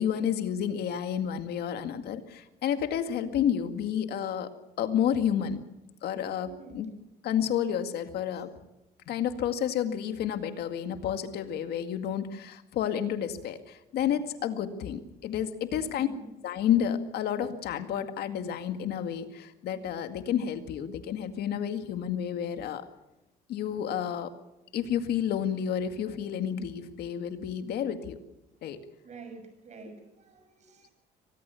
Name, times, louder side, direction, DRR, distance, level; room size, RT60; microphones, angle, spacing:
voice 1, 0.0-4.5 4.8-5.6 6.0-6.9 7.2-8.5 9.1-16.1 16.4-22.8 23.5-24.3 24.7-28.2 28.6-28.8, left 9 dB, 70° left, 8 dB, 2.1 m, -30 dB
voice 2, 3.1-3.4 6.4-7.0 15.7-16.3 29.0-30.9, right 4 dB, 45° right, 8 dB, 6.5 m, -47 dB
24.0 x 19.0 x 7.1 m, 0.95 s
cardioid pair, 110°, 17 cm